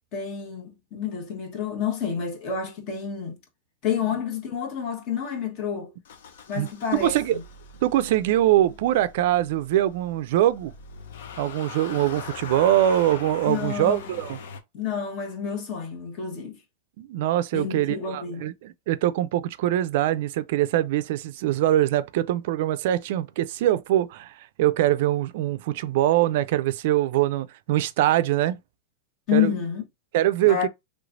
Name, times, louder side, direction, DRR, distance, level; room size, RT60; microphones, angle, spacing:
voice 1, 0.1-3.4 3.8-5.9 6.5-7.4 13.4-14.1 14.7-16.6 17.5-18.5 29.3-29.8 30.4-30.7, left 8 dB, 45° left, 1.2 m, -29 dB
Motor vehicle (road) / Engine starting, 6.0-14.6, left 6 dB, 75° left, 0.7 m, -41 dB
voice 2, 6.6-7.4 7.8-10.7 11.4-14.4 17.0-28.6 29.3-29.5 30.1-30.6, right 13 dB, 60° right, 0.3 m, -23 dB
3.2 x 3.2 x 2.5 m
supercardioid pair, 140°, 0 cm